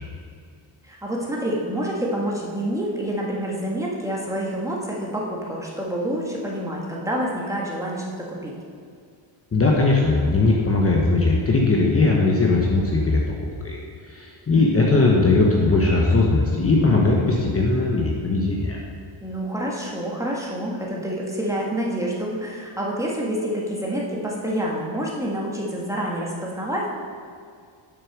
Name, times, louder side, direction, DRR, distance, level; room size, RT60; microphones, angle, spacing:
voice 1, 0.8-8.5 14.5-15.1 19.2-26.9, right 1 dB, 5° right, -4 dB, 1.6 m, -28 dB
voice 2, 9.5-13.2 13.6-13.8 14.0-18.8, left 3 dB, 30° left, -2 dB, 1.1 m, -19 dB
7.5 x 6.6 x 6.1 m, 2.2 s
cardioid pair, 120°, 50 cm